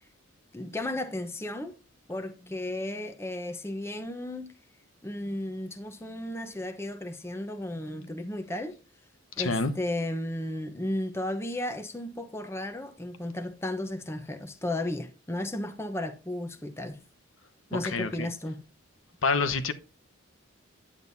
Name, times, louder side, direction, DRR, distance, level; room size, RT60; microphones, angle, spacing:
voice 1, 0.5-1.7 2.1-4.5 5.0-8.8 9.4-17.0 17.7-18.6, left 1 dB, 10° left, 0.8 m, -34 dB
voice 2, 9.4-9.7 17.7-18.3 19.2-19.7, left 4 dB, 75° left, 1.1 m, -27 dB
10.0 x 8.9 x 2.7 m
head